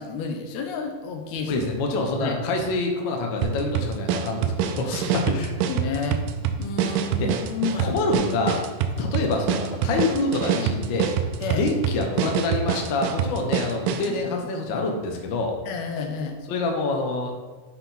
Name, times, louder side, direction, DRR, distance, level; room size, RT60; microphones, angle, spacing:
voice 1, 0.0-1.6 2.2-2.4 5.7-6.2 6.6-8.0 11.4-11.7 14.1-14.2 15.7-16.4, left 5 dB, 75° left, 4 dB, 1.7 m, -30 dB
voice 2, 1.4-5.5 7.2-7.4 7.8-8.6 9.0-11.1 11.6-15.6 16.5-17.3, left 3 dB, 90° left, 2 dB, 1.0 m, -26 dB
sound 1, 3.4-14.2, right 8 dB, 90° right, 2.1 m, -26 dB
9.3 x 4.0 x 4.1 m, 1.3 s
omnidirectional pair, 3.6 m